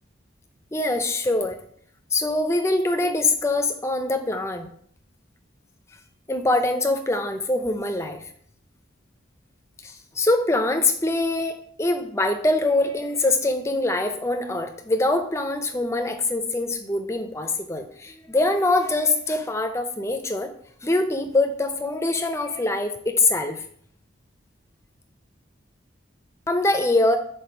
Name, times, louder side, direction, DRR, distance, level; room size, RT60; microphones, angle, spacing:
voice 1, 0.7-1.6 2.1-4.7 6.3-8.2 9.8-20.5 20.8-23.6 26.5-27.2, left 2 dB, 15° left, 6 dB, 0.5 m, -23 dB
5.1 x 4.3 x 4.4 m, 0.62 s
head